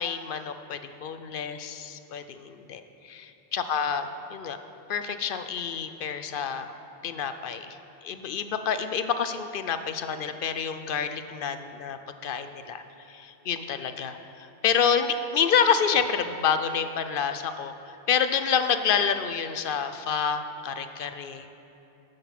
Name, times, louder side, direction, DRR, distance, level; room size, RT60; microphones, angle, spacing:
voice 1, 0.0-4.6 4.9-6.7 7.0-12.8 13.1-17.7 18.1-21.5, left 7 dB, 60° left, 10 dB, 0.7 m, -28 dB
13.0 x 7.9 x 5.9 m, 2.8 s
omnidirectional pair, 1.1 m